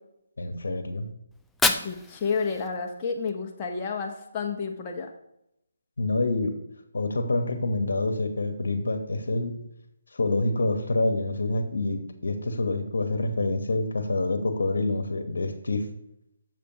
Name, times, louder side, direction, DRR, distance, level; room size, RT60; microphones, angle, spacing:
voice 1, 0.4-1.1 6.0-6.6 6.9-9.6 10.1-15.9, left 2 dB, 75° left, 7 dB, 1.1 m, -27 dB
Fire, 1.3-3.3, left 3 dB, 5° left, 0.3 m, -30 dB
voice 2, 1.6-5.1, left 5 dB, 25° left, 1 dB, 0.9 m, -31 dB
7.5 x 6.9 x 2.9 m, 0.80 s
figure-of-eight pair, 155°, 0 cm